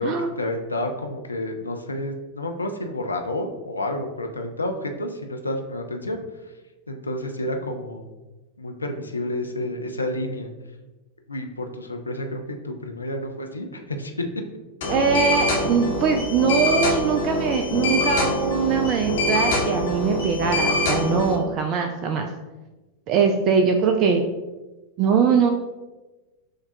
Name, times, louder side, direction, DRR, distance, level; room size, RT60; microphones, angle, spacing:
voice 1, 0.0-6.2 6.9-8.0 8.6-10.5 11.3-14.1, left 1 dB, 80° left, 4 dB, 0.4 m, -30 dB
sound 1, 14.8-21.3, left 1 dB, 60° left, 0.9 m, -24 dB
voice 2, 14.9-22.3 23.1-24.2 25.0-25.5, right 5 dB, 40° right, 4 dB, 0.3 m, -22 dB
6.4 x 2.2 x 2.7 m, 1.1 s
figure-of-eight pair, 90°, 0 cm